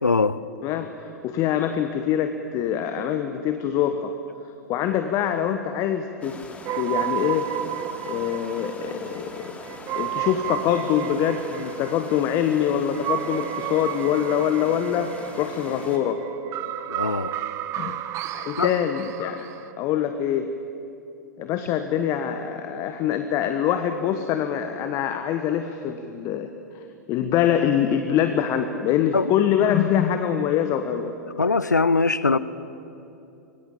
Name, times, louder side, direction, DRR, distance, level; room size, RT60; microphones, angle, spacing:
voice 1, 0.0-0.4 16.9-17.3 18.6-18.7 29.1-29.3 31.4-32.4, left 4 dB, 85° left, 0.9 m, -21 dB
voice 2, 0.6-4.1 4.7-6.4 6.7-7.5 8.1-9.5 10.0-16.2 17.8-18.0 18.3-19.5 19.8-20.5 21.4-26.5 26.7-26.8 27.1-31.1, left 9 dB, 35° left, 1.4 m, -24 dB
sound 1, 6.2-16.0, left 2 dB, 15° left, 3.2 m, -41 dB
sound 2, 6.6-19.7, right 12 dB, 35° right, 1.1 m, -32 dB
26.5 x 23.0 x 8.5 m
figure-of-eight pair, 100°, 9 cm